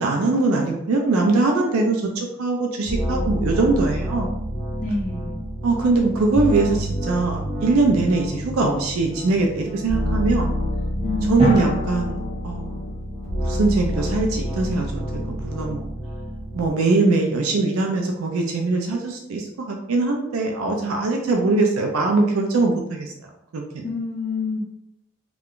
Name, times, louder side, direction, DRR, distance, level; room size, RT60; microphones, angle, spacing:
voice 1, 0.0-4.3 5.6-10.5 11.3-12.2 12.4-12.8 13.4-15.8 16.5-23.1 23.5-23.9, right 3 dB, 90° right, 2 dB, 0.4 m, -21 dB
sound 1, 2.8-16.7, equal, 10° left, 0.8 m, -28 dB
voice 2, 4.8-5.4 11.0-11.6 23.8-24.6, left 2 dB, 35° left, -1 dB, 0.5 m, -27 dB
Drum, 11.4-13.7, right 1 dB, 30° right, 0.8 m, -27 dB
2.4 x 2.2 x 3.5 m, 0.82 s
head